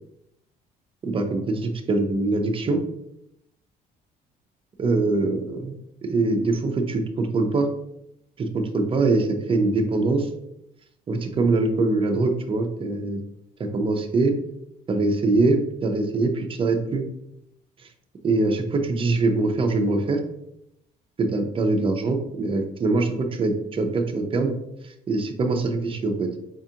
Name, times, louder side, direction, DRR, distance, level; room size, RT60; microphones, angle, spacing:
voice 1, 1.0-2.8 4.8-7.7 8.4-10.3 11.1-13.2 13.6-14.3 14.9-17.0 18.2-20.2 21.2-24.5 24.8-26.3, right 3 dB, 30° right, 5 dB, 0.5 m, -23 dB
5.0 x 2.4 x 2.7 m, 0.79 s
cardioid pair, 110°, 17 cm